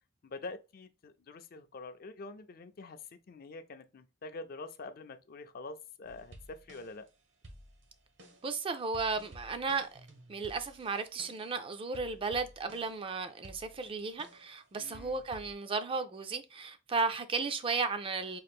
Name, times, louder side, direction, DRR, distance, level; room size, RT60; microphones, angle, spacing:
voice 1, 0.2-7.1 14.8-15.3, left 3 dB, 50° left, 0.4 m, -46 dB
sound 1, 6.0-7.1 7.4-11.6 11.9-13.1 13.4-14.6 14.9-15.5, right 1 dB, 70° right, 1.0 m, -54 dB
voice 2, 8.4-10.0 10.3-18.4, right 4 dB, 30° right, 0.4 m, -34 dB
3.8 x 2.5 x 3.5 m
head